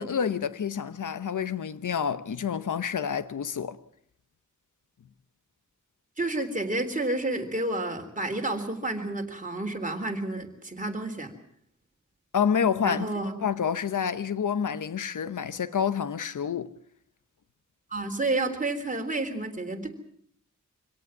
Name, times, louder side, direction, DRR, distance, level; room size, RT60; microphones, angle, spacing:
voice 1, 0.0-3.8 12.3-13.1 13.4-16.7, left 7 dB, 85° left, 0.9 m, -28 dB
voice 2, 6.2-11.3 12.8-13.3 17.9-19.9, right 2 dB, 25° right, 3.5 m, -30 dB
25.5 x 17.5 x 7.3 m
wide cardioid pair, 95°, 30 cm